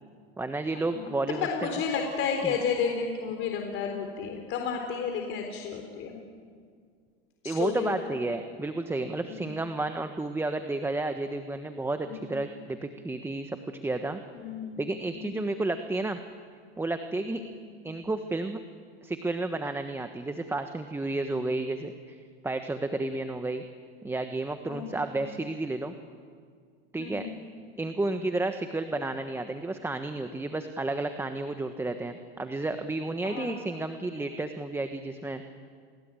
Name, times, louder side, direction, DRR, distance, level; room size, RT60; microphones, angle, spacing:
voice 1, 0.4-1.7 2.4-2.5 7.4-14.2 14.8-16.2 16.8-17.4 17.8-18.6 19.0-23.6 24.0-25.9 26.9-27.3 27.8-35.4, right 2 dB, 10° right, 7 dB, 1.3 m, -31 dB
voice 2, 0.9-6.2 7.4-8.2 9.2-9.6 12.0-12.4 14.3-14.8 15.1-15.6 17.3-17.6 24.7-25.2 27.0-27.4 33.2-33.5, left 6 dB, 45° left, 3 dB, 4.1 m, -32 dB
29.5 x 21.5 x 9.1 m, 2.1 s
hypercardioid pair, 115°, 30 cm